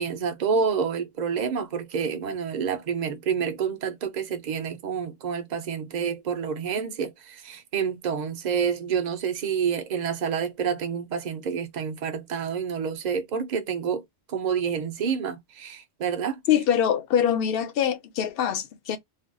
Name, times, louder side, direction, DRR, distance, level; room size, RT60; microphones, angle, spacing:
voice 1, 0.0-14.0 14.3-16.4, right 6 dB, 50° right, 0.6 m, -28 dB
voice 2, 16.5-19.0, left 9 dB, 60° left, 0.7 m, -24 dB
3.3 x 2.3 x 2.5 m
omnidirectional pair, 1.2 m